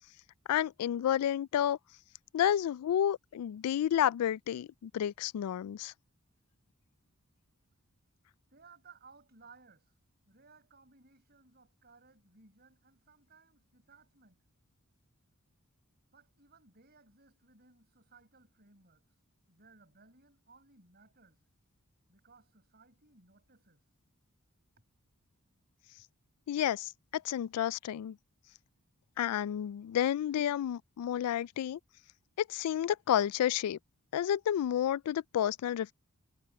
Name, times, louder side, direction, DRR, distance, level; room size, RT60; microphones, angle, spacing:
voice 1, 0.5-1.8 2.3-5.9 26.5-28.2 29.2-31.8 32.4-33.8 34.1-35.9, left 10 dB, 90° left, 0.3 m, -30 dB
voice 2, 8.5-9.9 10.3-14.4 16.1-19.1 19.5-21.4 22.1-23.8, right 4 dB, 45° right, 6.6 m, -61 dB
head